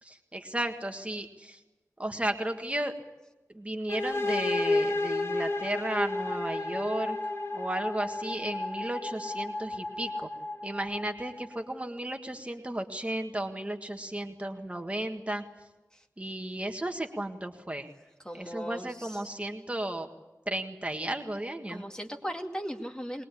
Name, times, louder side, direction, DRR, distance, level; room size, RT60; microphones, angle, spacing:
voice 1, 0.0-1.6 2.0-3.0 3.5-7.2 7.5-10.3 10.6-15.4 16.2-17.9 18.3-20.1 20.4-21.8, right 1 dB, 20° right, 5 dB, 1.7 m, -34 dB
sound 1, 3.9-11.6, left 2 dB, 50° left, 3.5 m, -32 dB
voice 2, 18.2-19.2 21.7-23.2, equal, 15° left, 3 dB, 2.3 m, -37 dB
21.5 x 21.0 x 8.4 m, 1.0 s
wide cardioid pair, 70°, 6 cm